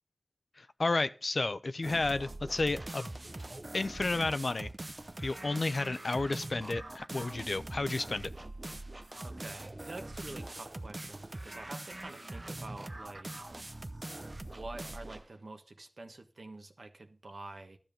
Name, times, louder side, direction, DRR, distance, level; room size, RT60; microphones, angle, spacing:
voice 1, 0.6-3.1 3.7-4.7 5.2-8.3, left 3 dB, 65° left, 0.7 m, -32 dB
sound 1, 1.8-15.3, right 2 dB, 40° right, 0.7 m, -43 dB
voice 2, 9.2-13.3 14.4-17.8, right 2 dB, 70° right, 1.3 m, -47 dB
12.5 x 7.5 x 5.2 m
wide cardioid pair, 60°, 0 cm